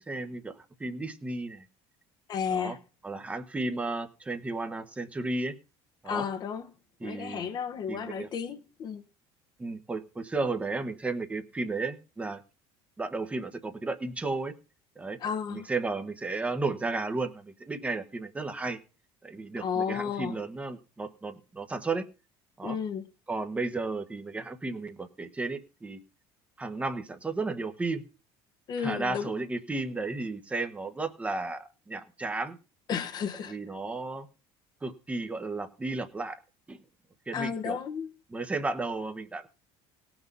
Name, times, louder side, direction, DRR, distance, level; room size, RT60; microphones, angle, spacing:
voice 1, 0.1-1.7 2.5-2.7 3.0-5.5 6.0-6.3 7.0-7.5 7.9-8.3 9.6-12.4 13.0-14.5 15.0-15.2 15.5-18.8 19.2-22.1 22.6-22.8 23.3-26.0 26.6-28.0 28.8-32.6 33.5-34.3 34.8-36.4 36.7-36.8 37.3-37.8 38.3-39.5, right 3 dB, 10° right, 1.1 m, -33 dB
voice 2, 2.3-2.8 6.0-6.7 7.0-9.0 15.2-15.7 19.6-20.4 22.6-23.0 28.7-29.3 32.9-33.6 37.3-38.1, left 7 dB, 35° left, 1.2 m, -32 dB
17.5 x 6.1 x 5.4 m
cardioid pair, 155°, 11 cm